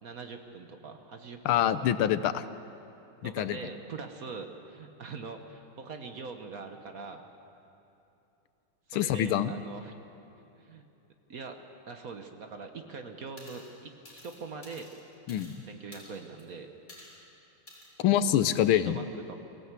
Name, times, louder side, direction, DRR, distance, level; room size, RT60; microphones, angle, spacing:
voice 1, 0.0-1.5 1.9-2.0 3.2-7.3 8.9-9.9 10.6-10.9 11.3-14.9 15.6-16.7 18.0-18.4 18.7-19.4, right 4 dB, 50° right, 5 dB, 1.3 m, -43 dB
voice 2, 1.4-2.4 3.2-3.6 8.9-9.5 15.3-15.6 18.0-19.0, left 11 dB, 80° left, 13 dB, 1.6 m, -25 dB
sound 1, 13.4-13.7 14.0-15.6 15.9-16.4 16.9-17.2 17.7-17.9 18.5-18.7, left 1 dB, 20° left, 4.5 m, -51 dB
23.5 x 16.0 x 8.2 m, 2.9 s
omnidirectional pair, 2.3 m